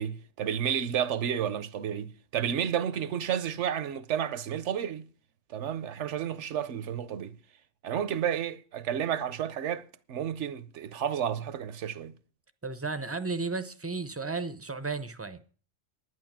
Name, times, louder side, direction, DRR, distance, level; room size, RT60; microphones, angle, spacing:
voice 1, 0.0-5.1 5.5-7.4 7.8-12.1, right 9 dB, 75° right, 1.0 m, -31 dB
voice 2, 12.6-15.4, right 3 dB, 15° right, 0.5 m, -34 dB
11.0 x 9.6 x 6.0 m
omnidirectional pair, 1.2 m